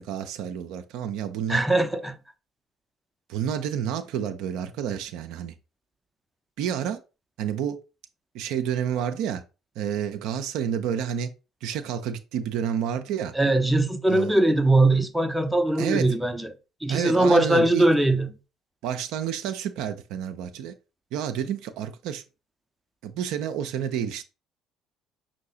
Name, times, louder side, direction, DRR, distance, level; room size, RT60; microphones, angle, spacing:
voice 1, 0.0-1.6 3.3-5.5 6.6-7.0 7.4-7.8 8.3-9.4 9.8-11.3 11.6-13.3 14.1-14.4 15.8-16.1 16.9-17.8 18.8-20.7 21.1-22.2 23.0-24.2, right 9 dB, 60° right, 0.4 m, -29 dB
voice 2, 1.5-2.2 13.3-16.5 16.8-18.3, right 2 dB, 5° right, 0.5 m, -21 dB
5.3 x 2.8 x 2.6 m
figure-of-eight pair, 50°, 0 cm